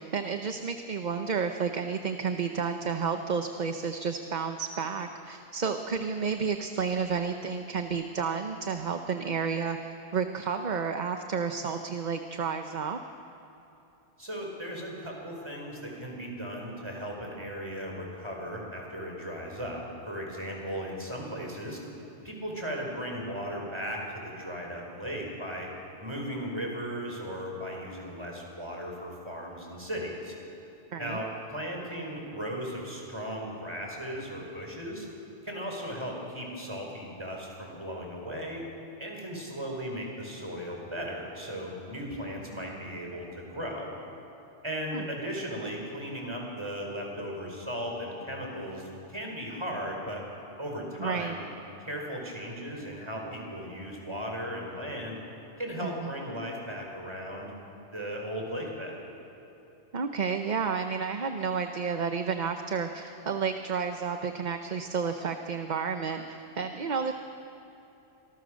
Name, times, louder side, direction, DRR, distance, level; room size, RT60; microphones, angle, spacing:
voice 1, 0.0-13.0 30.9-31.2 44.9-45.0 51.0-51.4 55.8-55.9 59.9-67.1, right 5 dB, 45° right, 6 dB, 0.9 m, -31 dB
voice 2, 14.2-19.8 20.1-21.8 22.2-25.7 26.0-30.3 31.0-35.1 35.4-38.7 39.0-43.9 44.6-50.2 50.6-51.4 51.8-55.2 55.6-57.5 57.9-59.0, equal, 25° right, 0 dB, 4.8 m, -36 dB
26.5 x 21.0 x 6.4 m, 3.0 s
omnidirectional pair, 1.2 m